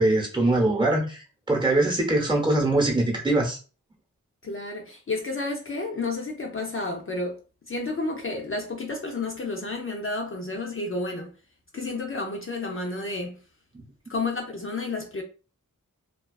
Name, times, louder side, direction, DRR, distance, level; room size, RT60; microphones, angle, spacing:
voice 1, 0.0-3.6 13.7-13.8, right 2 dB, 15° right, 0.8 m, -23 dB
voice 2, 4.4-7.4 7.7-11.3 11.7-13.4 14.1-15.2, left 3 dB, 40° left, 0.5 m, -31 dB
2.3 x 2.3 x 2.3 m
wide cardioid pair, 60°, 33 cm